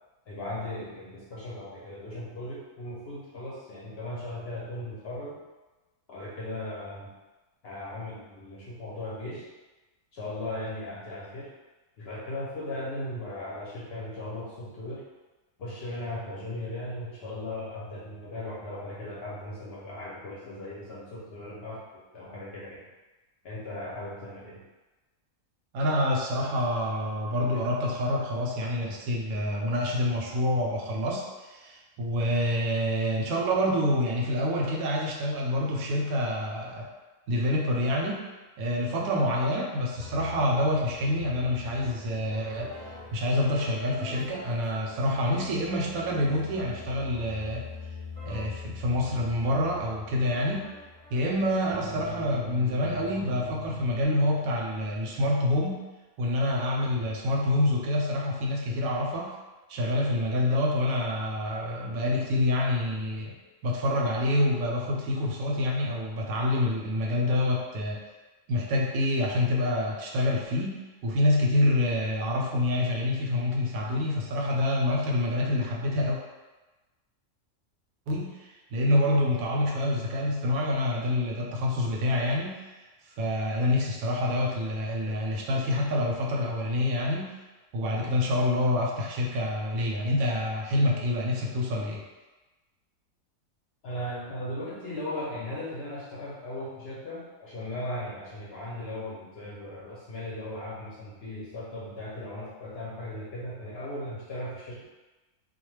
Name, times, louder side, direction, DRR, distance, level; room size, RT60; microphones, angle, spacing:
voice 1, 0.3-5.4 6.1-7.1 7.6-9.5 10.1-11.5 12.0-15.1 15.6-22.9 23.4-24.6 93.8-104.9, left 1 dB, 60° left, -6 dB, 0.7 m, -37 dB
voice 2, 25.7-36.9 37.3-38.2 38.6-47.6 48.2-50.7 51.1-55.8 56.2-59.3 59.7-63.4 63.6-68.0 68.5-76.2 78.1-82.6 83.2-87.3 87.7-92.0, left 1 dB, 85° right, -2 dB, 1.0 m, -27 dB
sound 1, 39.9-54.0, left 3 dB, 5° left, 0.9 m, -43 dB
2.3 x 2.2 x 3.1 m, 1.2 s
omnidirectional pair, 1.5 m